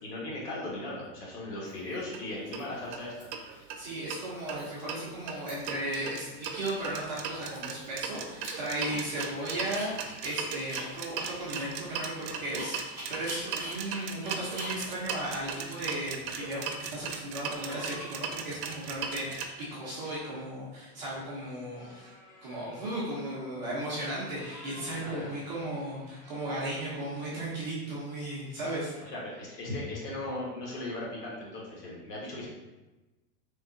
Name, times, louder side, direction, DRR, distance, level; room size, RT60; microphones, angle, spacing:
voice 1, 0.0-3.3 24.9-25.3 29.0-32.5, left 2 dB, 70° left, -4 dB, 1.3 m, -37 dB
Dog, 0.9-1.0 1.6-2.1 2.5-3.2 3.5-3.6 3.9-4.9 5.2-5.8 6.2-6.3 6.6-9.3 9.6-16.3, equal, 5° left, 1.1 m, -45 dB
sound 1, 2.0-2.2 2.5-2.6 2.9-3.0 3.3-4.2 4.5-19.4, right 6 dB, 80° right, 0.6 m, -38 dB
voice 2, 3.8-22.1 22.4-28.9, right 1 dB, 30° right, -7 dB, 0.4 m, -36 dB
sound 2, 14.3-18.3 18.7-27.6 27.8-28.1 28.5-30.3, equal, 25° left, 0.6 m, -53 dB
3.5 x 2.2 x 2.5 m, 1.1 s
supercardioid pair, 165°, 48 cm